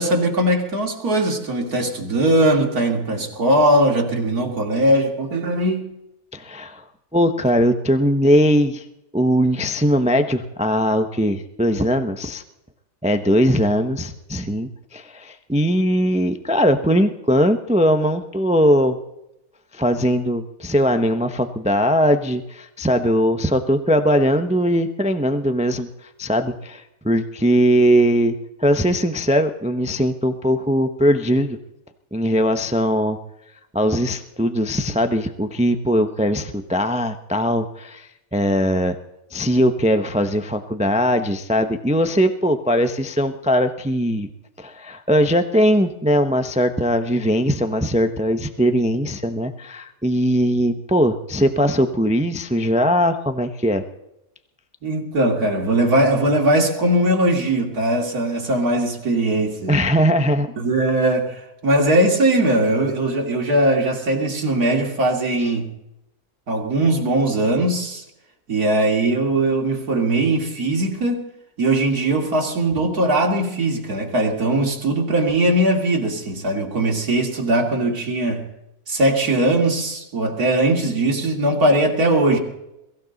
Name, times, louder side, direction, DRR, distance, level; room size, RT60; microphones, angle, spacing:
voice 1, 0.0-5.9 54.8-59.9 60.6-65.7 66.5-68.0 68.5-71.3 71.6-78.5 78.9-82.4, right 1 dB, 80° right, 1 dB, 3.1 m, -20 dB
voice 2, 6.3-6.8 7.1-8.8 9.1-12.4 13.0-19.0 19.7-25.9 26.2-31.6 32.1-33.2 33.7-38.9 39.3-44.3 44.6-53.8 59.7-60.5, equal, 5° right, 8 dB, 0.6 m, -20 dB
22.5 x 15.0 x 4.0 m, 0.86 s
omnidirectional pair, 1.6 m